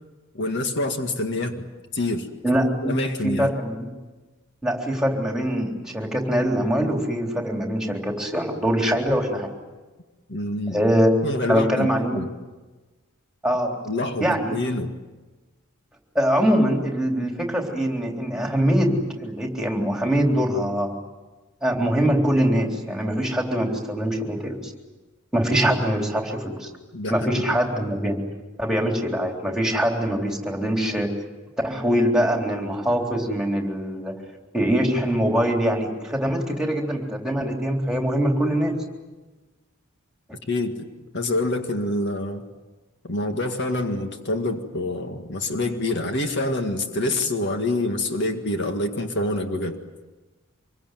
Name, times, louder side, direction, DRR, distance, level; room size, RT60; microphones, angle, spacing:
voice 1, 0.3-1.6 1.9-2.3 2.8-3.5 10.3-10.9 11.2-12.3 13.9-14.9 26.9-27.3 40.5-40.9 41.1-42.4 43.0-49.8, left 2 dB, 55° left, 5 dB, 2.0 m, -26 dB
voice 2, 2.4-2.9 3.2-3.8 4.6-9.5 10.7-11.1 11.5-12.2 13.4-13.7 14.2-14.6 16.2-21.0 21.6-24.7 25.3-26.7 27.1-28.2 28.6-31.1 31.6-34.1 34.5-38.8, equal, 5° right, 1 dB, 3.6 m, -23 dB
26.0 x 23.0 x 9.3 m, 1.2 s
head